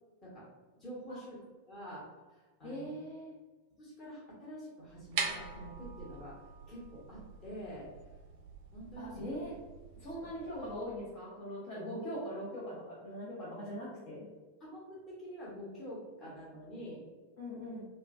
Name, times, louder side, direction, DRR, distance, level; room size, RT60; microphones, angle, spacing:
voice 1, 0.7-1.4 1.7-2.0 2.3-2.9 3.8-6.4 6.7-7.9 8.7-9.2 10.2-10.3 14.6-17.0, equal, 20° left, -7 dB, 1.2 m, -47 dB
voice 2, 2.6-3.3 9.0-9.5 10.0-14.3 17.4-17.9, equal, 45° left, -7 dB, 0.6 m, -41 dB
sound 1, 4.9-10.8, right 5 dB, 50° right, 0.4 m, -43 dB
3.1 x 2.1 x 2.5 m, 1.2 s
figure-of-eight pair, 90°, 0 cm